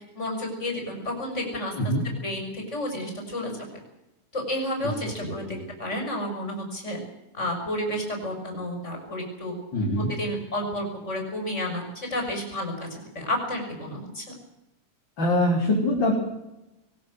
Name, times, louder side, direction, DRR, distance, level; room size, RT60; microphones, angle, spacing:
voice 1, 0.1-1.9 2.2-3.5 4.3-7.0 7.3-9.5 10.1-14.3, left 1 dB, 20° left, 2 dB, 6.7 m, -31 dB
voice 2, 5.2-5.6 9.7-10.1 15.2-16.2, left 1 dB, 35° left, -2 dB, 4.5 m, -24 dB
23.0 x 18.5 x 8.0 m, 0.92 s
omnidirectional pair, 3.6 m